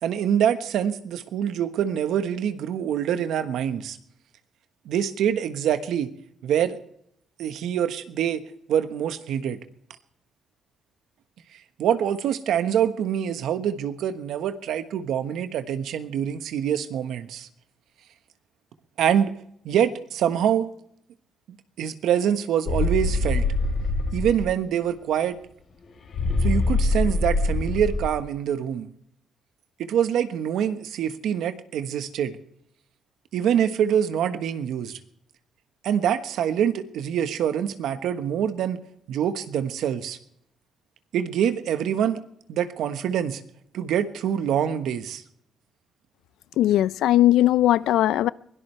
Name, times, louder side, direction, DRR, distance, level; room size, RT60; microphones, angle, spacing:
voice 1, 0.0-4.0 4.8-6.1 6.4-6.8 7.4-8.4 8.7-9.6 11.8-17.5 19.0-19.3 19.6-20.7 21.8-23.4 24.1-25.4 26.4-28.9 29.8-32.4 33.3-35.0 35.8-38.8 39.1-40.2 41.1-42.2 42.5-43.4 43.7-45.2, right 9 dB, 80° right, 1.3 m, -25 dB
sound 1, 22.7-24.5 26.1-28.1, left 2 dB, 55° left, 4.0 m, -24 dB
voice 2, 46.6-48.3, left 13 dB, 85° left, 0.5 m, -19 dB
22.5 x 17.0 x 3.3 m
cardioid pair, 90°, 0 cm